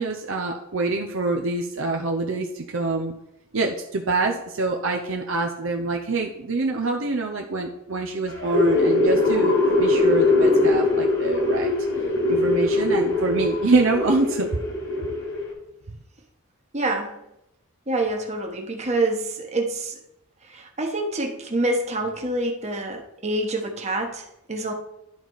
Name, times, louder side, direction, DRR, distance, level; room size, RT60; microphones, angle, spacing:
voice 1, 0.0-3.1 3.5-11.7 12.3-14.5, right 3 dB, 60° right, 2 dB, 0.7 m, -25 dB
sound 1, 8.3-15.5, left 2 dB, 65° left, 2.7 m, -21 dB
voice 2, 16.7-17.2 17.9-20.0 20.4-24.7, right 2 dB, 30° right, 2 dB, 1.3 m, -27 dB
11.0 x 4.1 x 4.7 m, 0.83 s
head